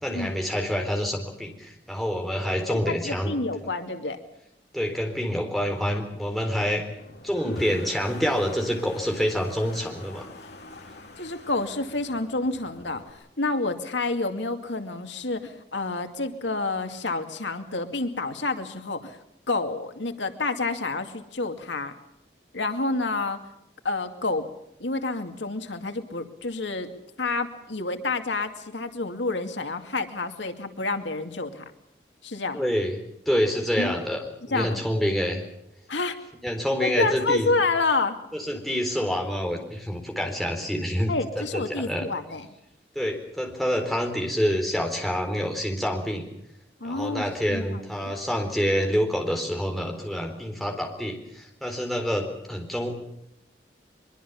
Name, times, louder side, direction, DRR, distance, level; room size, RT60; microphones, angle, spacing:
voice 1, 0.0-3.3 4.7-6.9 7.2-10.3 32.5-33.0 33.3-34.2 34.4-35.4 36.4-37.5 38.3-41.1 41.5-42.1 43.0-46.2 46.8-52.9, equal, ahead, 1 dB, 4.0 m, -27 dB
voice 2, 2.7-4.2 11.2-19.2 19.5-21.9 22.5-23.4 23.8-24.5 24.8-26.9 27.2-31.6 32.2-32.7 33.8-33.9 34.5-34.8 35.9-36.2 36.8-38.2 41.1-42.5 46.8-48.1, left 3 dB, 90° left, 6 dB, 2.4 m, -29 dB
Toilet flush, 7.0-13.1, left 1 dB, 70° left, 3.5 m, -44 dB
23.0 x 23.0 x 7.1 m, 0.79 s
head